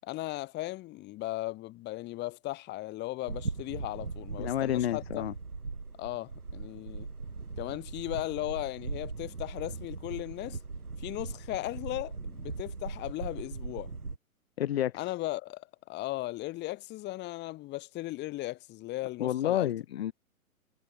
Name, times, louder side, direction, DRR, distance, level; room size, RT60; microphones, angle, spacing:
voice 1, 0.0-5.2 6.0-7.1 7.6-10.6 11.0-13.9 15.0-19.7, left 18 dB, 25° left, 5.5 m, -37 dB
sound 1, 3.3-14.2, right 4 dB, 80° right, 2.3 m, -40 dB
voice 2, 4.4-5.3 14.6-15.1 19.2-20.1, left 12 dB, 45° left, 1.4 m, -30 dB
figure-of-eight pair, 120°, 44 cm